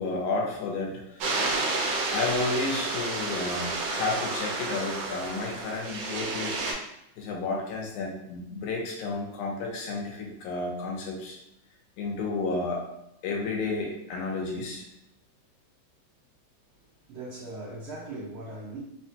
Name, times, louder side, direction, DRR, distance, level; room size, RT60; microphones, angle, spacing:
voice 1, 0.0-1.4 2.1-6.6 7.2-11.4 12.0-12.8 13.2-14.9, left 3 dB, 80° left, 2.1 m, -31 dB
sound 1, 1.2-6.7, right 3 dB, 70° right, 1.7 m, -30 dB
voice 2, 16.7-18.8, right 2 dB, 85° right, 1.1 m, -40 dB
4.9 x 2.2 x 2.7 m
omnidirectional pair, 3.5 m